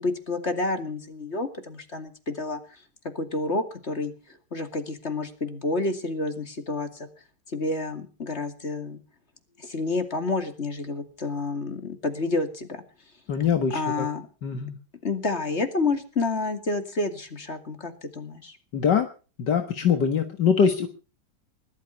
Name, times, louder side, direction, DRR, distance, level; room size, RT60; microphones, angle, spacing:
voice 1, 0.0-2.6 3.1-4.1 4.5-7.1 7.5-9.0 9.6-12.8 13.7-14.3 15.0-18.6, left 3 dB, 35° left, 7 dB, 2.7 m, -29 dB
voice 2, 13.3-14.1 14.4-14.8 18.7-19.1 19.4-20.9, left 7 dB, 70° left, 6 dB, 2.1 m, -23 dB
20.0 x 12.5 x 5.8 m, 0.37 s
omnidirectional pair, 2.0 m